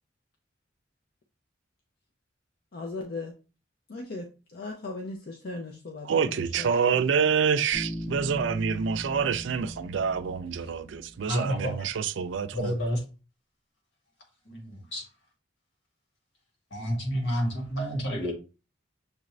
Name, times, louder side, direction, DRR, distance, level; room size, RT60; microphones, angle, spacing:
voice 1, 2.7-3.4 3.9-7.1, left 3 dB, 55° left, 0.6 m, -38 dB
voice 2, 6.1-12.7, right 6 dB, 70° right, 0.4 m, -27 dB
Bass guitar, 7.7-11.4, equal, 5° right, 1.1 m, -39 dB
voice 3, 11.3-11.8 12.5-13.0 14.5-15.0 16.7-18.3, equal, 70° left, 1.8 m, -29 dB
6.7 x 2.5 x 3.1 m
head